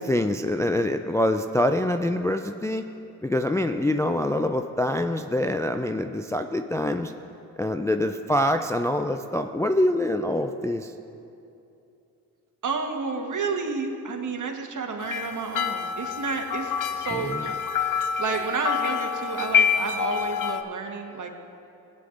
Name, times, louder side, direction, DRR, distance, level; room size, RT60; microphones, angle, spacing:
voice 1, 0.0-2.9 3.2-7.1 7.6-10.9 17.1-17.5, left 1 dB, 10° left, 7 dB, 0.3 m, -25 dB
voice 2, 12.6-17.6 18.2-21.3, right 4 dB, 50° right, 3 dB, 1.3 m, -31 dB
sound 1, 15.0-20.6, left 7 dB, 55° left, 0.7 m, -27 dB
16.5 x 9.5 x 2.5 m, 2.8 s
supercardioid pair, 55°, 38 cm